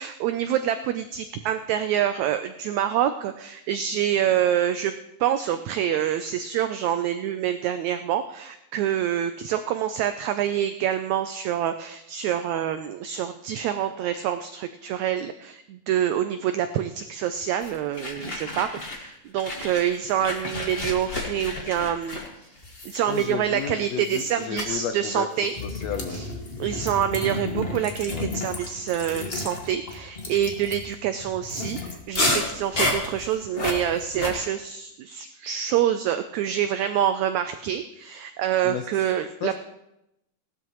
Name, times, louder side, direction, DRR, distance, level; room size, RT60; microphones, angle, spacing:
voice 1, 0.0-4.9 5.2-22.2 22.8-25.5 26.1-26.2 26.6-39.5, right 10 dB, 90° right, 9 dB, 1.6 m, -26 dB
sound 1, 17.6-19.1 19.4-23.6 24.0-24.3 24.6-24.8 25.4-34.3, left 2 dB, 45° left, 0.7 m, -31 dB
voice 2, 23.1-26.2 28.1-28.4 38.6-38.9 39.4-39.5, left 8 dB, 85° left, 6 dB, 1.4 m, -33 dB
18.0 x 12.5 x 3.0 m, 0.85 s
omnidirectional pair, 3.9 m